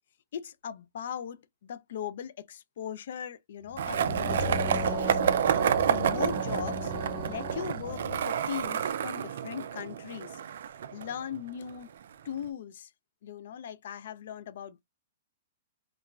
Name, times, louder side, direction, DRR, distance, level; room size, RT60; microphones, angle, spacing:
voice 1, 0.3-5.2 5.8-6.9 7.2-10.4 10.9-11.9 12.2-12.9 13.2-14.8, left 9 dB, 65° left, 0.4 m, -39 dB
sound 1, 3.6-8.3, left 1 dB, 10° right, 0.7 m, -36 dB
Skateboard, 3.8-11.7, right 8 dB, 70° right, 0.3 m, -29 dB
2.9 x 2.3 x 2.3 m
hypercardioid pair, 160°, 0 cm